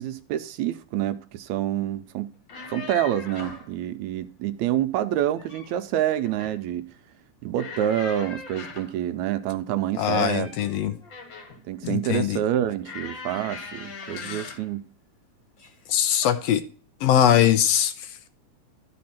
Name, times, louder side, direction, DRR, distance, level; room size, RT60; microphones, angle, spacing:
voice 1, 0.0-2.3 2.7-6.9 7.4-10.5 11.7-14.8, right 11 dB, 80° right, 1.9 m, -27 dB
sound 1, 2.3-3.7 5.1-5.8 6.1-6.6 7.5-9.0 9.9-11.6 12.8-14.7 15.6-15.9 16.2-16.4, left 5 dB, 45° left, 2.1 m, -40 dB
voice 2, 10.0-11.0 11.8-12.4 14.2-14.5 15.9-16.6 17.0-18.1, left 10 dB, 75° left, 1.6 m, -22 dB
12.5 x 4.2 x 5.7 m
omnidirectional pair, 3.4 m